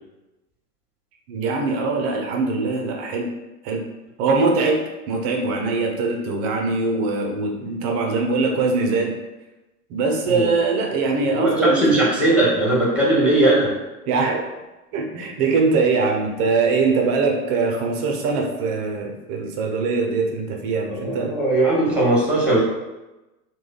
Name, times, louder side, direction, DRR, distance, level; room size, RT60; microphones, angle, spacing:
voice 1, 1.3-3.3 3.6-3.9 4.2-9.2 9.9-12.1 14.1-14.5 14.9-21.3, right 3 dB, 35° right, 2 dB, 0.5 m, -22 dB
voice 2, 11.3-13.7 20.9-22.6, right 2 dB, 5° right, -4 dB, 1.2 m, -19 dB
3.1 x 2.3 x 3.8 m, 1.0 s
hypercardioid pair, 110°, 46 cm